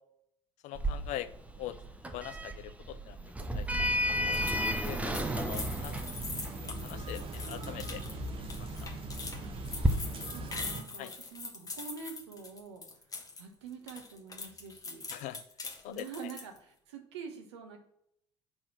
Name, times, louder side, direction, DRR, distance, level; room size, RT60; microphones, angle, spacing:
voice 1, 0.6-1.3 1.6-1.8 2.1-3.2 3.5-3.7 4.0-4.4 4.8-6.0 6.6-8.2 8.6-8.7 11.0-11.1 15.1-15.4 15.8-16.1, left 13 dB, 55° left, 13 dB, 0.6 m, -42 dB
Sliding door, 0.8-9.9, equal, 10° right, 0.9 m, -34 dB
sound 1, 4.3-13.4 13.7-16.6, left 3 dB, 25° left, 1.4 m, -43 dB
sound 2, 5.1-10.8, right 2 dB, 40° right, 1.2 m, -40 dB
voice 2, 10.2-12.8 13.4-15.0 15.8-17.8, right 5 dB, 75° right, 4 dB, 1.3 m, -46 dB
6.0 x 4.2 x 5.8 m, 0.71 s
figure-of-eight pair, 60°, 14 cm